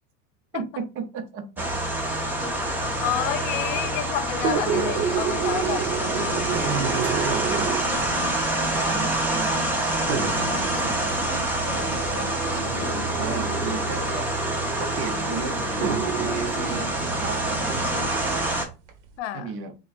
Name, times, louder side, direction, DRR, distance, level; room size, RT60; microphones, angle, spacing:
voice 1, 0.5-1.6 6.5-9.6 10.3-11.4 11.7-12.0 13.2-14.3 14.8-16.9 17.2-18.3 19.3-19.7, right 5 dB, 40° right, 0.7 m, -35 dB
sound 1, 1.6-18.7, right 1 dB, 5° right, 0.5 m, -26 dB
voice 2, 3.0-6.6 12.1-12.3 12.6-13.2 19.2-19.6, left 12 dB, 80° left, 0.6 m, -31 dB
sound 2, 4.4-8.0 8.9-9.0 10.1-14.0 15.0-15.1 15.8-18.5 18.9-19.0, right 7 dB, 75° right, 1.1 m, -30 dB
sound 3, 11.6-16.7, left 3 dB, 35° left, 1.2 m, -40 dB
6.5 x 2.4 x 2.5 m
supercardioid pair, 160°, 35 cm